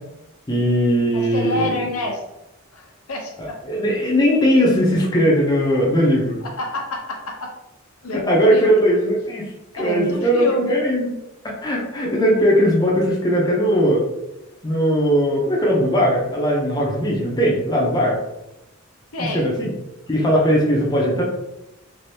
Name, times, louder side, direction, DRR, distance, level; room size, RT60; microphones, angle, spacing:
voice 1, 0.5-1.8 3.4-6.4 8.1-9.5 9.7-11.1 11.4-14.0 14.6-18.2 19.2-19.7 20.1-21.2, equal, 20° left, -3 dB, 0.5 m, -19 dB
voice 2, 1.1-2.2 2.7-3.3 6.6-7.5 8.0-8.8 9.8-10.8 19.1-19.5, left 2 dB, 85° left, 0 dB, 0.7 m, -28 dB
3.3 x 2.5 x 2.7 m, 0.93 s
head